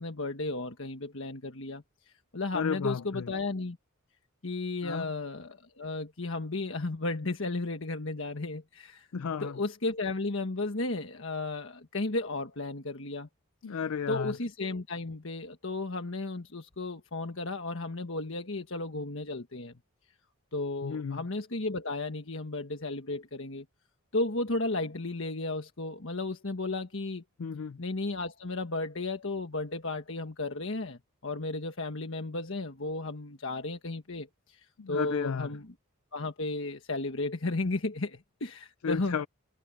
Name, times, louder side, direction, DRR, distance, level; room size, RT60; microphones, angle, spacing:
voice 1, 0.0-1.8 2.3-3.8 4.4-9.1 9.4-13.3 14.1-19.7 20.5-23.6 24.1-27.2 27.8-34.6 34.9-35.7 36.1-39.1, left 2 dB, 65° left, 1.4 m, -34 dB
voice 2, 2.5-3.3 4.8-5.1 9.1-9.6 13.6-14.4 20.8-21.2 27.4-27.8 34.8-35.5 38.8-39.3, left 6 dB, 85° left, 0.5 m, -33 dB
head